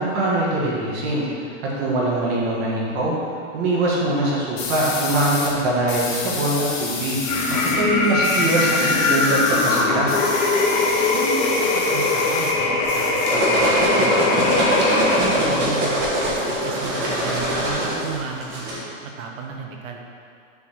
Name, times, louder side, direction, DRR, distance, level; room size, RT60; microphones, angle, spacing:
voice 1, 0.0-3.2 3.5-7.2 7.8-10.2, right 2 dB, 50° right, -5 dB, 1.7 m, -22 dB
sound 1, 4.6-5.5 5.9-7.8 8.0-12.5 12.8-13.8, left 4 dB, 50° left, 1.6 m, -30 dB
sound 2, 7.2-15.6, left 3 dB, 30° left, 0.8 m, -21 dB
voice 2, 7.5-7.8 11.1-14.2 14.7-20.0, right 5 dB, 75° right, 1 dB, 1.2 m, -33 dB
sound 3, 12.9-18.8, equal, 30° right, 1.4 m, -22 dB
7.2 x 3.8 x 6.3 m, 2.4 s
supercardioid pair, 165°, 40 cm